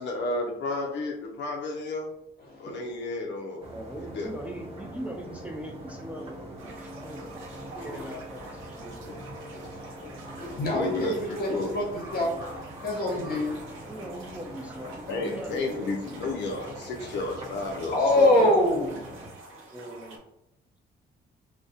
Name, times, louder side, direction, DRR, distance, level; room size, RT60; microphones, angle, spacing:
voice 1, 0.0-2.1 2.6-3.6 4.0-4.3 10.0-10.1 10.7-11.1 11.5-11.7 15.1-18.6, left 3 dB, 65° left, 0 dB, 0.4 m, -32 dB
voice 2, 2.4-2.9 7.7-8.1 9.5-12.4 12.8-13.6 17.9-19.0, left 1 dB, 50° left, -1 dB, 0.9 m, -25 dB
sound 1, 3.6-19.3, right 1 dB, 30° right, 0.7 m, -43 dB
voice 3, 3.7-7.4 7.8-9.0 10.7-11.1 13.9-15.9 19.7-20.2, right 1 dB, 5° right, 1 dB, 0.3 m, -40 dB
sound 2, 6.6-20.2, right 2 dB, 85° right, 0.6 m, -47 dB
2.2 x 2.1 x 2.6 m, 0.88 s
cardioid pair, 90°, 20 cm